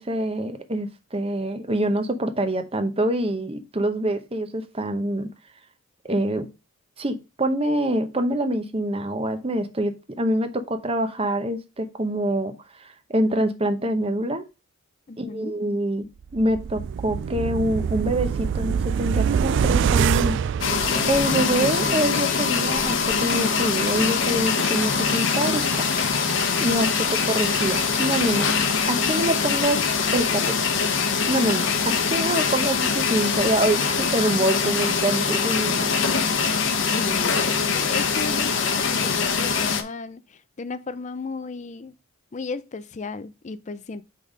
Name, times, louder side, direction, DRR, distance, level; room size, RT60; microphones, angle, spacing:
voice 1, 0.0-5.3 6.1-6.5 7.0-12.5 13.1-14.4 15.2-20.4 21.1-25.9 26.6-28.5 28.9-29.8 30.1-30.8 31.3-31.7 32.1-36.5, right 1 dB, 25° right, 0.8 m, -25 dB
voice 2, 15.1-15.6 26.8-27.1 31.6-31.7 32.0-32.1 36.9-42.0 42.3-44.0, left 3 dB, 35° left, 0.4 m, -35 dB
sound 1, 16.3-21.5 21.9-22.0, right 7 dB, 60° right, 0.3 m, -24 dB
sound 2, 20.6-39.8, left 5 dB, 60° left, 0.9 m, -23 dB
sound 3, 20.8-29.0 30.1-30.2, right 1 dB, 5° right, 1.3 m, -36 dB
5.3 x 4.1 x 5.0 m
head